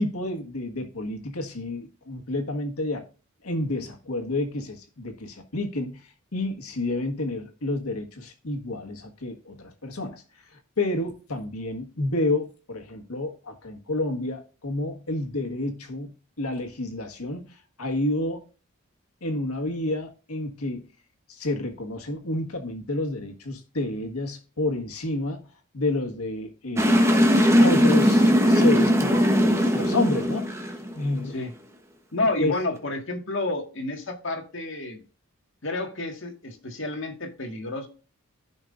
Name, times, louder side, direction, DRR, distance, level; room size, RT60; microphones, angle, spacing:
voice 1, 0.0-3.0 3.4-18.4 19.2-20.9 21.3-25.5 25.7-27.1 27.6-30.5 30.9-31.4 32.4-32.6, left 2 dB, 90° left, 1.6 m, -30 dB
sound 1, 26.8-31.2, equal, 10° right, 1.0 m, -19 dB
voice 2, 32.1-35.0 35.6-37.9, left 2 dB, 60° left, 1.8 m, -30 dB
15.0 x 5.5 x 2.5 m
head